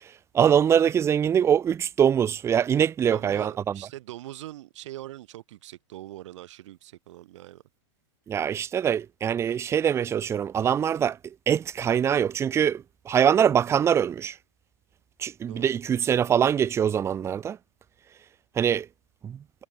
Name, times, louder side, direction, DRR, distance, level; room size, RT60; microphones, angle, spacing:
voice 1, 0.3-3.8 8.3-11.2 11.5-14.4 15.2-17.6 18.6-18.9 19.2-19.4, right 8 dB, 15° right, 0.5 m, -23 dB
voice 2, 3.1-7.6 15.5-15.8, right 15 dB, 70° right, 5.2 m, -42 dB
hypercardioid pair, 135°, 16 cm